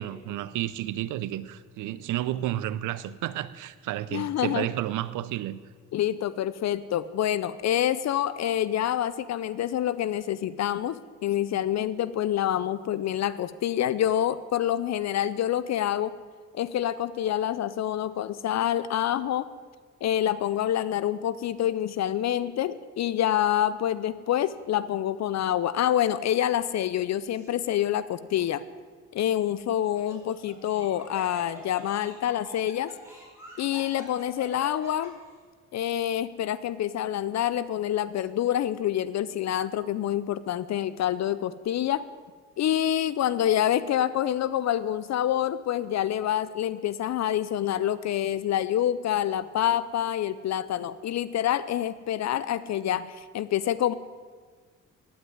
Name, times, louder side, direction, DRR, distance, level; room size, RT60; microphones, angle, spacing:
voice 1, 0.0-5.6, right 13 dB, 85° right, 0.6 m, -31 dB
voice 2, 4.1-4.7 5.9-16.2 16.5-19.5 20.0-28.6 29.1-32.9 33.6-35.2 35.7-42.1 42.6-53.9, left 11 dB, 60° left, 0.6 m, -27 dB
Laughter, 27.3-27.8 28.4-28.5 29.7-35.3, right 1 dB, 10° right, 4.9 m, -47 dB
9.5 x 9.5 x 9.4 m
cardioid pair, 90°, 30 cm